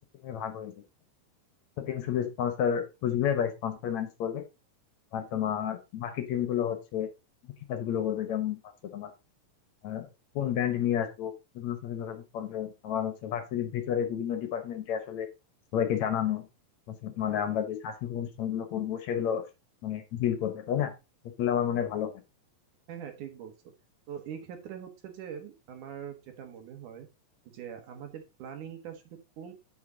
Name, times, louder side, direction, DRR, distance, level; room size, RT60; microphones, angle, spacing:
voice 1, 0.2-0.7 1.8-4.4 5.1-7.1 7.7-8.6 8.9-9.1 9.8-10.1 10.4-15.3 15.7-16.5 16.9-19.4 19.8-20.9 21.4-22.2, left 9 dB, 65° left, 8 dB, 2.0 m, -30 dB
voice 2, 22.9-23.5 24.1-27.1 27.5-29.5, right 8 dB, 65° right, 6 dB, 2.9 m, -42 dB
9.4 x 6.1 x 3.9 m, 0.27 s
omnidirectional pair, 4.0 m